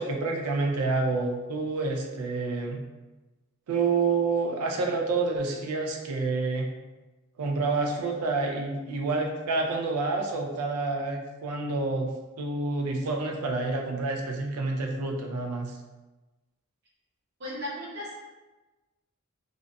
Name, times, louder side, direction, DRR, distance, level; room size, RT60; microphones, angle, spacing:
voice 1, 0.0-2.8 3.7-6.7 7.4-12.1 12.4-15.7, right 3 dB, 85° right, 2 dB, 0.4 m, -28 dB
voice 2, 17.4-18.1, left 1 dB, 45° right, -7 dB, 0.9 m, -35 dB
2.5 x 2.2 x 2.5 m, 1.1 s
head